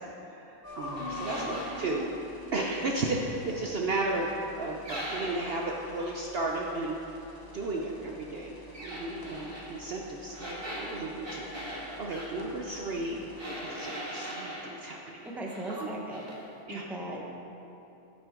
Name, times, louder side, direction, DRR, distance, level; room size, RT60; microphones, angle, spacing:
voice 1, 0.0-2.1 2.5-7.0 7.4-13.2 13.6-15.3 15.7-15.9 16.7-16.8, right 2 dB, 55° right, -1 dB, 0.8 m, -34 dB
sound 1, 0.6-13.4, left 2 dB, 45° left, 1.3 m, -46 dB
sound 2, 1.0-1.8 4.9-5.7 8.7-9.7 10.3-12.3 13.4-14.7 15.2-15.8 16.1-16.4, equal, 20° right, 1.7 m, -40 dB
voice 2, 1.3-2.0 15.3-16.2 16.7-17.4, right 1 dB, ahead, -2 dB, 0.8 m, -38 dB
14.5 x 6.1 x 3.7 m, 2.9 s
omnidirectional pair, 1.4 m